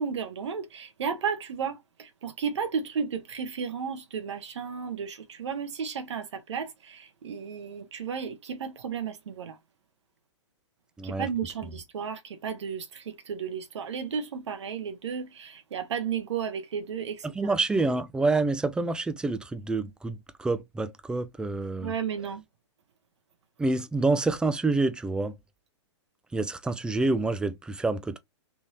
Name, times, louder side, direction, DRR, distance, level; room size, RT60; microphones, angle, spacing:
voice 1, 0.0-9.6 11.0-17.5 21.8-22.4, right 6 dB, 70° right, 1.0 m, -33 dB
voice 2, 17.3-21.9 23.6-25.4 26.3-28.2, right 3 dB, 5° right, 0.4 m, -27 dB
3.6 x 2.7 x 3.0 m
hypercardioid pair, 120°, 15 cm